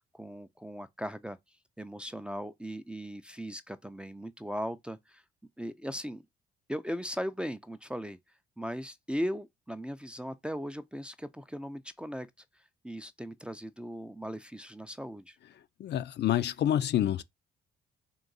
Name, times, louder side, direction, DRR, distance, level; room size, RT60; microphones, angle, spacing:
voice 1, 0.0-1.4 1.8-5.2 5.6-6.2 6.7-8.2 8.6-12.3 12.8-15.4, equal, 5° right, 0.4 m, -38 dB
voice 2, 15.8-17.2, left 11 dB, 55° left, 0.5 m, -27 dB
3.8 x 2.5 x 3.9 m
cardioid pair, 80°, 21 cm